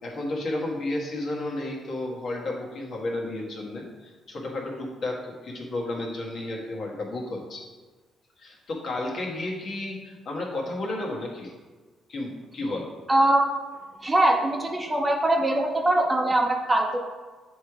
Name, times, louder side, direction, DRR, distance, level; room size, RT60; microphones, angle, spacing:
voice 1, 0.0-7.6 8.4-11.5 12.1-12.9, left 2 dB, 55° left, -2 dB, 1.5 m, -32 dB
voice 2, 13.1-13.4 14.0-17.0, right 1 dB, 20° right, 2 dB, 0.8 m, -22 dB
8.0 x 3.2 x 4.8 m, 1.3 s
cardioid pair, 90°, 0 cm